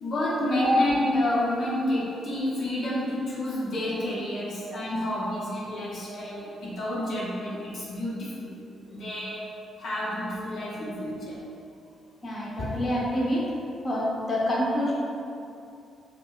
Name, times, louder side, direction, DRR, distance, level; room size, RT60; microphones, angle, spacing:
voice 1, 0.0-8.6 8.9-9.4 9.8-11.4, left 1 dB, 65° left, -7 dB, 0.8 m, -29 dB
voice 2, 12.2-13.5 13.8-14.9, equal, 30° left, -7 dB, 0.8 m, -27 dB
5.2 x 2.1 x 2.4 m, 2.6 s
cardioid pair, 90°, 0 cm